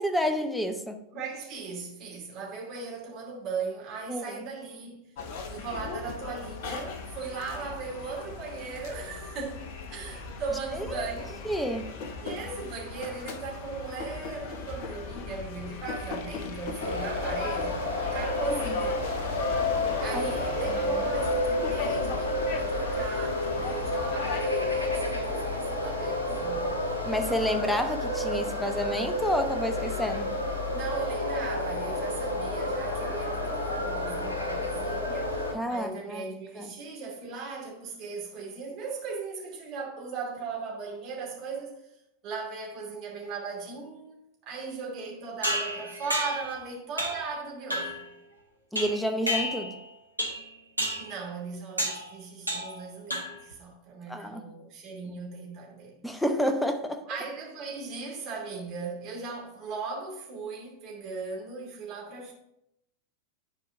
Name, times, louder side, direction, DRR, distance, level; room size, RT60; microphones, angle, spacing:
voice 1, 0.0-1.0 4.1-4.4 10.7-11.1 11.4-11.9 18.5-18.7 20.1-20.3 20.6-20.8 27.0-30.3 35.5-36.3 36.6-36.7 48.7-49.7 54.1-54.4 56.0-57.0, equal, 5° left, 0.8 m, -29 dB
voice 2, 1.1-5.0 5.5-9.6 9.9-11.3 12.2-19.0 20.0-26.7 30.7-48.1 51.0-56.2 57.1-62.3, right 4 dB, 40° right, 2.6 m, -38 dB
sound 1, 5.2-24.4, left 4 dB, 50° left, 0.9 m, -37 dB
sound 2, 16.8-35.5, left 1 dB, 75° left, 1.7 m, -30 dB
sound 3, 45.4-46.6 47.0-47.3 47.7-48.0 48.8-49.8 50.2-50.5 50.8-51.1 51.8-52.1 52.5-52.8 53.1-53.5, equal, 90° right, 1.1 m, -31 dB
11.0 x 4.7 x 3.7 m
figure-of-eight pair, 90°, 0 cm